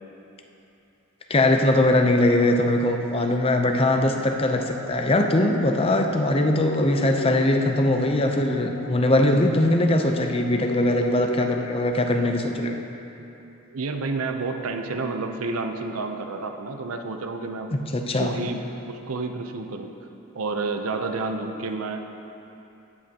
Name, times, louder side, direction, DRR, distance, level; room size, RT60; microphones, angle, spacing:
voice 1, 1.3-12.8 17.7-18.4, left 1 dB, 25° left, 4 dB, 0.6 m, -21 dB
sound 1, 3.7-11.7, left 4 dB, 80° left, 0.6 m, -37 dB
voice 2, 13.7-17.7 18.2-19.9 20.3-22.0, right 3 dB, 90° right, 6 dB, 0.6 m, -30 dB
17.0 x 7.4 x 2.9 m, 2.9 s
head